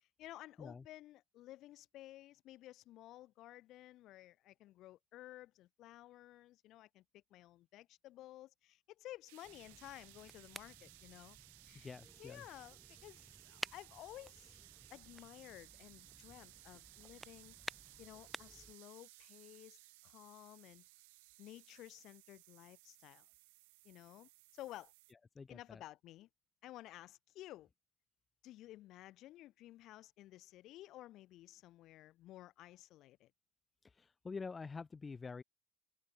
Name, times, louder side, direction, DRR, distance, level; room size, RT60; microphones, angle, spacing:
voice 1, 0.0-11.4 11.7-11.9 12.2-14.5 14.9-17.6 18.0-19.8 20.0-20.8 21.4-23.2 23.8-24.9 25.5-26.3 26.6-27.7 28.4-33.3, left 15 dB, 55° left, 1.4 m, -54 dB
sound 1, 9.3-25.1, right 25 dB, 85° right, 3.7 m, -61 dB
sound 2, 9.4-18.7, right 1 dB, 5° right, 6.5 m, -53 dB
voice 2, 11.7-12.4 25.3-25.8 33.8-35.4, left 4 dB, 20° left, 0.9 m, -47 dB
supercardioid pair, 105°, 0 cm